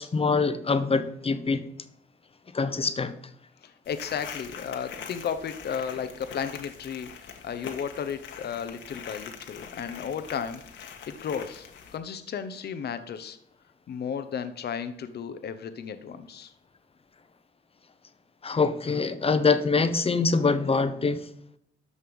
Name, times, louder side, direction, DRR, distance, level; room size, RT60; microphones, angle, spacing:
voice 1, 0.0-1.6 2.5-3.2 18.4-21.3, left 4 dB, 30° left, 11 dB, 1.0 m, -24 dB
voice 2, 3.6-7.1 7.4-13.4 13.9-16.5, left 7 dB, 55° left, 10 dB, 1.0 m, -34 dB
sound 1, 3.8-12.0, left 7 dB, 70° left, 1.6 m, -43 dB
13.0 x 5.5 x 5.4 m, 0.69 s
cardioid pair, 90°, 20 cm